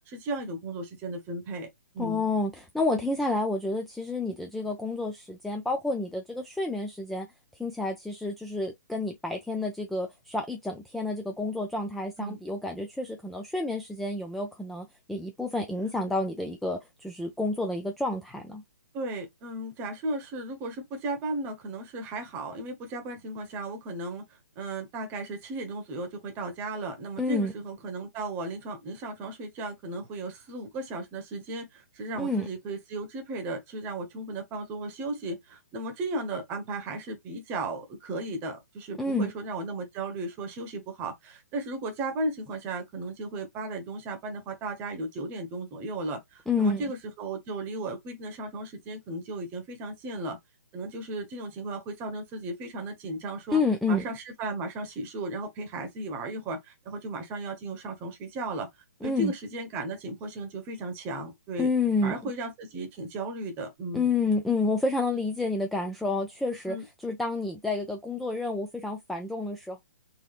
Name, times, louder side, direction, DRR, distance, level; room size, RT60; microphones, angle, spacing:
voice 1, 0.1-1.7 1.9-2.3 12.2-12.4 18.9-24.3 24.6-50.4 50.7-53.6 53.9-58.7 59.0-61.7 62.0-64.1 66.7-66.8, right 2 dB, 20° right, 1.0 m, -35 dB
voice 2, 2.0-7.3 7.6-18.6 27.2-27.5 32.2-32.5 39.0-39.3 46.5-46.9 53.5-54.1 59.0-59.3 61.6-62.1 63.9-69.8, left 3 dB, ahead, 0.3 m, -29 dB
3.9 x 2.7 x 2.3 m
figure-of-eight pair, 130°, 9 cm